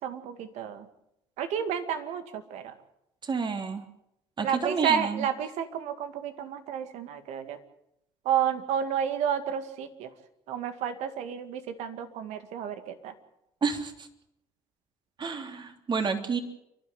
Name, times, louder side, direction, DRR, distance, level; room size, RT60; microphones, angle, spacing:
voice 1, 0.0-0.9 1.4-2.7 4.4-7.6 8.3-10.1 10.5-13.1, right 8 dB, 75° right, 9 dB, 2.2 m, -31 dB
voice 2, 3.2-3.8 4.4-5.2 13.6-14.1 15.2-16.4, right 5 dB, 40° right, 5 dB, 3.3 m, -30 dB
29.5 x 12.0 x 8.0 m, 0.82 s
supercardioid pair, 70°, 12 cm